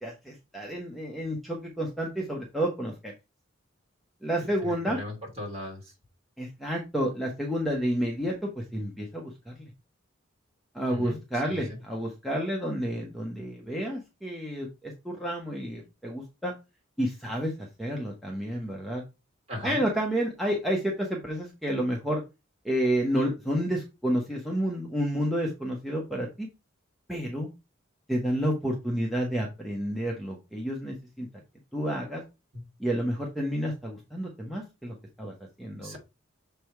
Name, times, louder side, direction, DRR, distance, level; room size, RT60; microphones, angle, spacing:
voice 1, 0.0-3.1 4.2-5.0 6.4-9.6 10.7-16.5 17.0-17.5 17.8-19.0 19.6-22.2 22.6-26.5 27.1-27.5 28.1-31.3 31.7-32.2 32.8-35.3 35.6-36.0, equal, ahead, -2 dB, 1.0 m, -30 dB
voice 2, 4.4-5.9 10.9-11.2 11.4-11.8 19.5-19.8 32.5-32.6 35.8-36.0, left 2 dB, 30° right, -2 dB, 2.7 m, -37 dB
6.9 x 3.4 x 4.5 m, 0.26 s
head